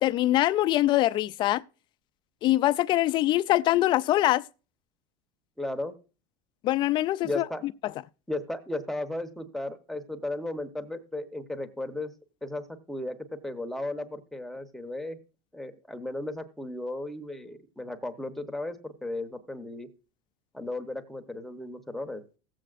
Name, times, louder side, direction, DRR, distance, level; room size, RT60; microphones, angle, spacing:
voice 1, 0.0-1.6 2.4-4.4 6.6-7.7, left 15 dB, 40° left, 0.4 m, -23 dB
voice 2, 5.6-5.9 7.2-7.6 8.3-12.1 12.4-15.2 15.5-19.9 20.5-22.2, left 2 dB, ahead, 0.9 m, -35 dB
17.0 x 7.7 x 2.5 m
supercardioid pair, 125°, 12 cm